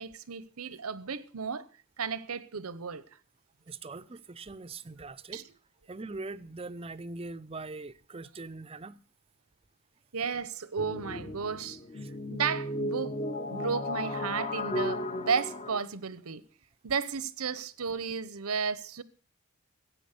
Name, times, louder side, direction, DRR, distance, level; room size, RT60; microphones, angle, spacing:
voice 1, 0.0-1.7 2.0-3.0 5.3-5.4 10.1-11.8 12.3-13.2 13.5-16.4 16.8-19.0, right 5 dB, 85° right, 0.9 m, -33 dB
voice 2, 3.7-5.4 5.9-9.0 12.0-12.1, right 3 dB, 25° right, 0.5 m, -42 dB
sound 1, 10.8-15.8, left 1 dB, 25° left, 0.8 m, -35 dB
15.5 x 8.6 x 6.6 m
head